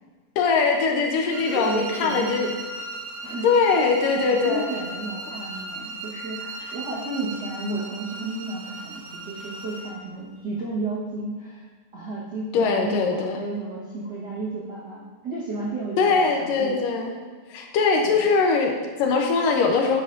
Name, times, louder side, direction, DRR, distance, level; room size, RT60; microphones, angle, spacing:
voice 1, 0.4-2.5 3.4-4.7 12.5-13.4 16.0-17.2 17.5-20.0, left 4 dB, 75° left, 2 dB, 2.4 m, -21 dB
voice 2, 1.3-2.5 3.2-3.5 4.1-11.6 11.9-16.8 18.0-18.2, right 2 dB, 55° right, -7 dB, 1.1 m, -32 dB
sound 1, 1.3-10.0, right 2 dB, 75° right, 3.3 m, -37 dB
10.5 x 9.9 x 2.7 m, 1.5 s
omnidirectional pair, 4.2 m